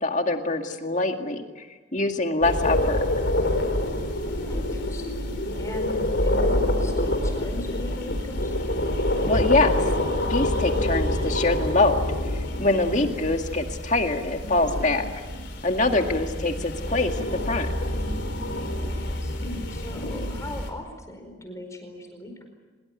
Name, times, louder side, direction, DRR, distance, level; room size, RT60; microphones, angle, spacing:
voice 1, 0.0-1.7 1.9-3.0 9.3-9.8 10.3-12.0 12.6-15.1 15.6-17.7, left 2 dB, 35° left, 5 dB, 2.1 m, -24 dB
sound 1, 2.4-20.7, left 1 dB, 60° left, 4.2 m, -27 dB
voice 2, 4.2-8.5 12.8-13.1 16.0-16.4 18.8-22.5, left 1 dB, 15° left, 4 dB, 4.7 m, -40 dB
24.5 x 22.0 x 9.7 m, 1.3 s
head